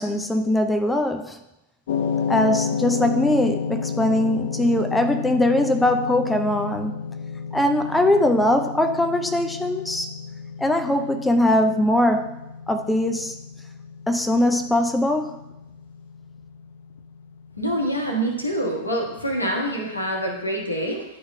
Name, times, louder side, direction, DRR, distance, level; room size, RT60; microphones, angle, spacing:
voice 1, 0.0-1.4 2.3-6.9 7.5-10.1 10.6-12.3 12.7-13.3 14.1-15.4, left 1 dB, 5° left, 5 dB, 0.5 m, -21 dB
sound 1, 1.9-20.1, left 6 dB, 60° left, 0.5 m, -32 dB
voice 2, 17.6-21.0, right 1 dB, 85° left, 0 dB, 1.3 m, -26 dB
10.5 x 4.3 x 2.3 m, 0.90 s
figure-of-eight pair, 90°, 0 cm